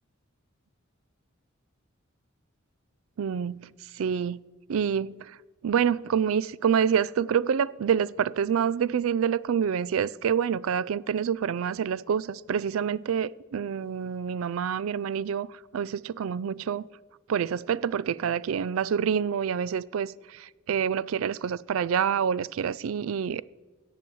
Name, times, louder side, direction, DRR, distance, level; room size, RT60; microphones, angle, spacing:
voice 1, 3.2-3.7 4.0-4.4 4.7-5.3 5.6-15.5 15.7-16.9 17.3-23.4, right 7 dB, 90° right, 0.4 m, -27 dB
17.5 x 7.0 x 4.6 m
head